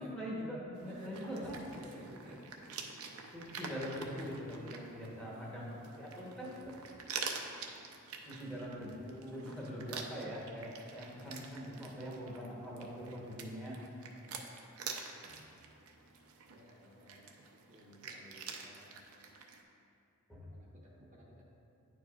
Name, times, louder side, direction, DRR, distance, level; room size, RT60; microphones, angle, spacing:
voice 1, 0.0-1.6 3.3-6.8 8.2-13.8 20.3-20.5, equal, 5° left, -6 dB, 1.0 m, -43 dB
sound 1, 0.7-19.6, right 5 dB, 75° right, 0.5 m, -47 dB
voice 2, 0.9-2.6 5.1-6.0 8.3-8.7 14.0-14.5 16.5-17.2 17.7-18.9 20.5-21.4, equal, 35° right, -4 dB, 0.7 m, -55 dB
9.5 x 4.6 x 2.4 m, 2.5 s
head